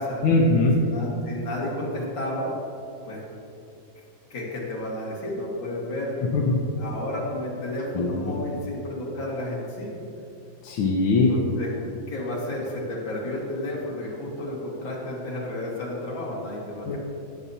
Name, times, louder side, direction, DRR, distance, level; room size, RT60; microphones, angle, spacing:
voice 1, 0.2-0.8 6.3-6.6 7.9-8.3 10.6-11.3 16.9-17.0, left 3 dB, 90° left, -1 dB, 1.6 m, -21 dB
voice 2, 0.8-2.5 3.1-3.2 4.3-6.3 6.8-10.0 11.3-11.7 12.1-17.0, left 1 dB, 70° left, -5 dB, 2.6 m, -32 dB
16.0 x 7.0 x 2.8 m, 2.7 s
omnidirectional pair, 2.1 m